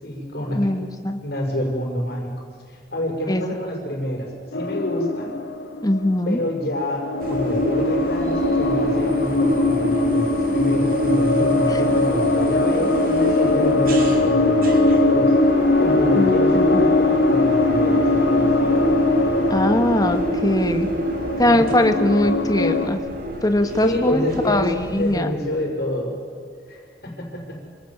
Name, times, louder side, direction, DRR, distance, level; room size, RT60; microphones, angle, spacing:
voice 1, 0.0-0.7 1.2-2.3 2.7-5.3 6.3-15.3 15.8-18.5 21.4-21.6 23.8-24.7 25.0-26.2 26.7-27.6, equal, 65° left, 1 dB, 6.0 m, -27 dB
voice 2, 0.5-1.2 3.3-3.4 5.8-6.4 16.2-16.8 19.5-20.9 21.4-23.0 23.4-25.3, left 1 dB, 20° left, 7 dB, 1.6 m, -21 dB
sound 1, 4.5-6.4 6.9-22.9, left 2 dB, 90° left, 1.6 m, -21 dB
sound 2, 7.2-25.2, equal, 55° right, 3.4 m, -26 dB
27.0 x 19.0 x 7.4 m, 2.2 s
head